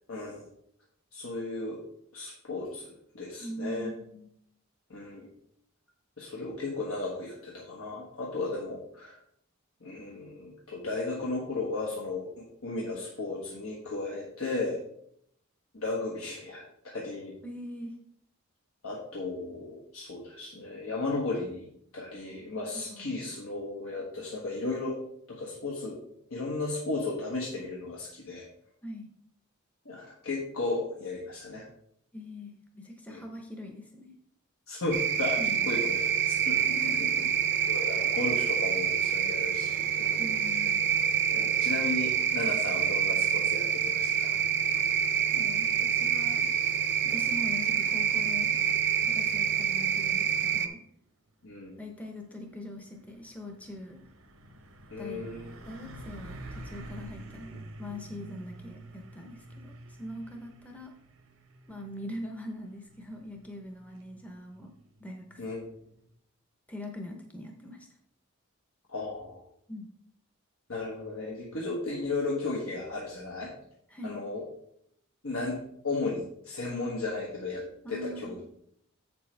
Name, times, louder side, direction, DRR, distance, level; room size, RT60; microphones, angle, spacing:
voice 1, 0.1-0.4 1.1-1.8 2.1-2.9 3.1-3.9 4.9-5.3 6.2-9.2 9.8-14.8 15.7-17.3 18.8-21.7 21.9-25.0 25.3-26.0 26.3-28.5 29.8-31.6 33.1-33.2 34.7-36.6 37.7-40.3 41.3-44.4 51.4-51.7 54.9-55.5 65.4-65.6 68.9-69.4 70.7-73.5 74.0-74.4 75.2-75.6 75.8-78.4, left 3 dB, 85° left, -3 dB, 1.4 m, -35 dB
voice 2, 3.4-4.3 17.4-17.9 22.7-23.2 28.8-29.1 32.1-34.1 35.4-35.7 36.5-37.3 40.2-40.9 45.2-46.4 47.0-48.6 49.0-50.8 51.8-54.0 55.0-55.3 55.6-60.9 61.7-64.7 65.0-65.4 66.7-67.9 69.7-69.9 73.9-74.2 77.8-78.4, left 1 dB, 5° left, 3 dB, 0.6 m, -42 dB
sound 1, 34.9-50.7, right 8 dB, 50° right, 0.6 m, -27 dB
Truck, 51.9-66.2, right 1 dB, 85° right, 1.2 m, -49 dB
8.0 x 6.8 x 3.3 m, 0.71 s
head